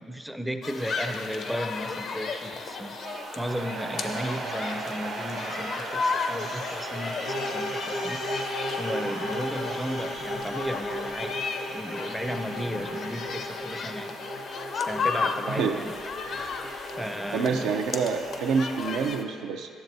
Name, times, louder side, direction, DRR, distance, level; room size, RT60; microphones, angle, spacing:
voice 1, 0.0-11.4 11.7-14.1 14.7-15.9 17.0-17.7, equal, ahead, 7 dB, 0.4 m, -35 dB
sound 1, 0.6-19.2, left 4 dB, 55° left, 0.5 m, -34 dB
sound 2, 1.2-18.7, right 3 dB, 70° right, 0.9 m, -40 dB
sound 3, 7.3-19.0, left 1 dB, 80° left, 0.9 m, -36 dB
voice 2, 15.5-15.8 17.3-19.7, right 5 dB, 85° right, 3 dB, 0.4 m, -27 dB
10.5 x 6.9 x 2.6 m, 2.1 s
cardioid pair, 90°, 0 cm